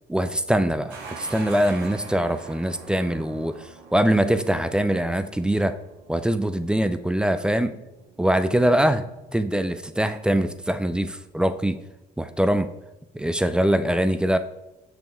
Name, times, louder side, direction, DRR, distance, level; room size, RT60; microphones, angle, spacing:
voice 1, 0.1-5.8 6.1-7.7 8.2-9.0 9.3-11.8 12.2-12.7 13.1-14.4, right 1 dB, 5° right, 11 dB, 0.4 m, -23 dB
sound 1, 0.9-11.6, right 5 dB, 80° right, 1.1 m, -45 dB
6.9 x 6.2 x 3.5 m, 0.94 s
cardioid pair, 110°, 17 cm